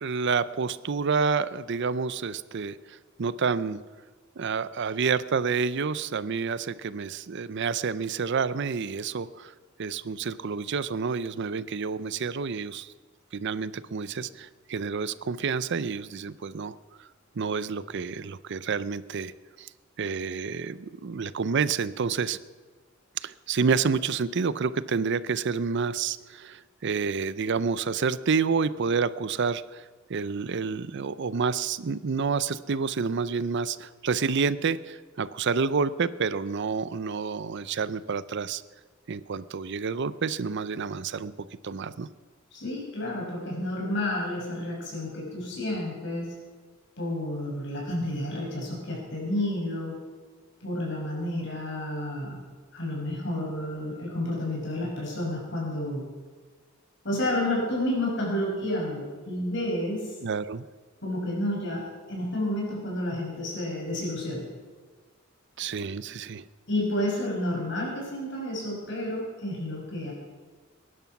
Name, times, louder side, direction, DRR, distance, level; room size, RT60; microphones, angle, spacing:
voice 1, 0.0-3.8 4.4-9.5 9.8-12.9 13.3-17.1 17.4-19.3 19.6-19.7 20.0-22.4 23.2-29.8 30.1-38.6 39.1-41.3 41.6-42.1 60.2-60.7 65.6-66.5, right 5 dB, 60° right, 16 dB, 0.5 m, -29 dB
voice 2, 42.5-46.3 47.0-49.9 50.6-52.4 52.7-56.0 57.0-60.1 61.0-61.8 62.1-64.5 66.7-70.1, left 1 dB, 60° left, -2 dB, 6.1 m, -30 dB
20.5 x 11.0 x 5.9 m, 1.5 s
head